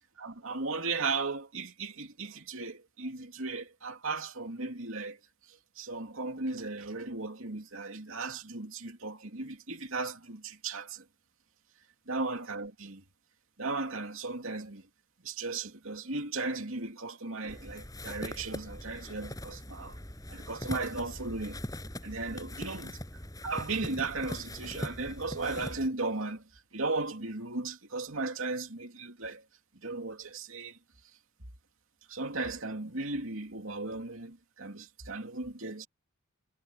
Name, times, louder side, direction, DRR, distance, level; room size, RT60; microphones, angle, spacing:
voice 1, 0.2-5.2 5.5-11.0 12.1-13.0 13.6-14.9 15.2-20.0 20.3-21.6 22.0-22.9 23.4-29.4 29.8-30.8 32.1-35.9, right 3 dB, 70° right, 2.9 m, -36 dB
sound 1, 17.5-25.9, left 1 dB, 15° left, 5.8 m, -41 dB
head